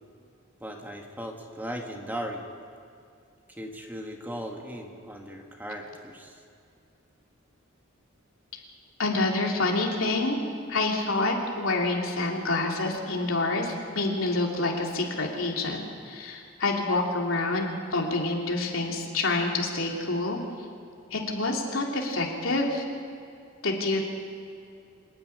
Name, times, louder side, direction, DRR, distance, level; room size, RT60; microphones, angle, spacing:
voice 1, 0.6-2.4 3.6-6.4, equal, 10° right, 2 dB, 1.8 m, -37 dB
voice 2, 9.0-10.4 10.7-20.4 21.1-22.8 23.6-24.0, left 2 dB, 85° left, 0 dB, 3.1 m, -27 dB
26.0 x 10.0 x 9.8 m, 2.4 s
head